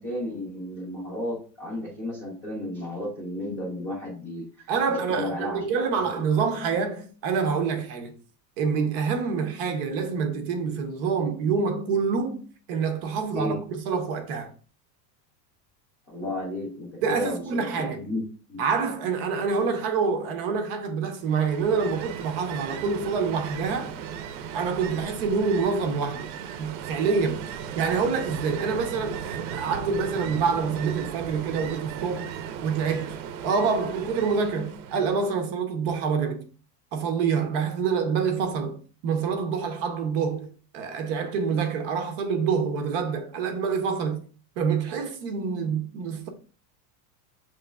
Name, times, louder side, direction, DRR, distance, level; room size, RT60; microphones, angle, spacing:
voice 1, 0.0-4.7 5.1-5.7 6.0-6.1 13.3-13.6 16.1-18.6, left 1 dB, 20° left, 0.3 m, -33 dB
voice 2, 4.7-8.1 8.6-14.5 17.0-18.0 18.6-23.9 24.5-26.3 26.6-27.5 27.8-32.4 32.6-33.2 33.4-36.4 36.9-44.2 44.6-46.3, right 5 dB, 35° right, 0.6 m, -27 dB
Ocean, 21.2-35.3, right 8 dB, 80° right, 0.7 m, -36 dB
7.0 x 3.1 x 2.2 m
supercardioid pair, 170°, 50 cm